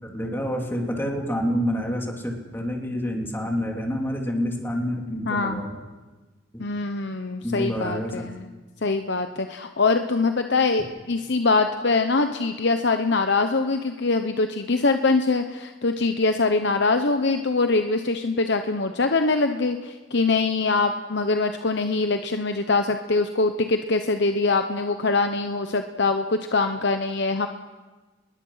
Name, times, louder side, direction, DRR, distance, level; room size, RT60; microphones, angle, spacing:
voice 1, 0.0-5.7 6.5-6.6 7.4-8.3, equal, 10° left, 1 dB, 3.1 m, -28 dB
voice 2, 5.3-5.6 6.6-8.5 8.8-27.5, left 3 dB, 60° left, 7 dB, 0.9 m, -23 dB
25.5 x 21.0 x 5.7 m, 1.3 s
head